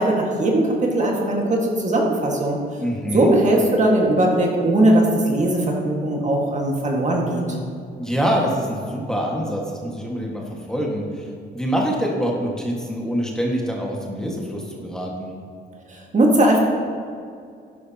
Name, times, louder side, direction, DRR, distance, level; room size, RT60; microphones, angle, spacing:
voice 1, 0.0-2.6 3.1-7.4 16.1-16.6, right 1 dB, 35° right, -1 dB, 1.8 m, -19 dB
voice 2, 2.8-3.4 8.0-11.3 11.5-15.3, equal, 5° left, -2 dB, 1.7 m, -25 dB
12.0 x 10.0 x 2.9 m, 2.3 s
cardioid pair, 90°, 20 cm